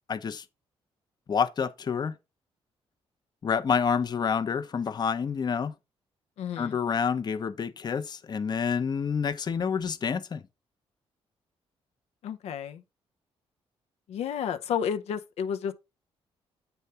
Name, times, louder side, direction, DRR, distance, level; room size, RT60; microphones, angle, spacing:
voice 1, 0.1-0.4 1.3-2.1 3.4-5.7 6.6-10.4, left 6 dB, 40° left, 0.8 m, -28 dB
voice 2, 6.4-6.8 12.2-12.8 14.1-15.7, left 8 dB, 80° left, 0.7 m, -31 dB
8.0 x 3.4 x 5.5 m
cardioid pair, 95°, 11 cm